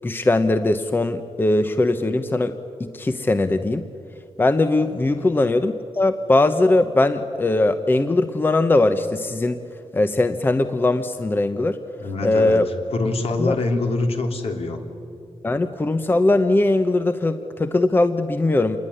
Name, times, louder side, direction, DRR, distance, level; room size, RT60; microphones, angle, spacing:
voice 1, 0.0-3.9 4.4-9.6 9.9-11.8 12.2-12.7 13.4-13.6 15.4-18.8, left 2 dB, 20° left, 9 dB, 0.8 m, -20 dB
voice 2, 12.0-14.8, left 2 dB, 65° left, 4 dB, 3.3 m, -25 dB
28.0 x 21.0 x 9.9 m, 2.5 s
wide cardioid pair, 175°, 11 cm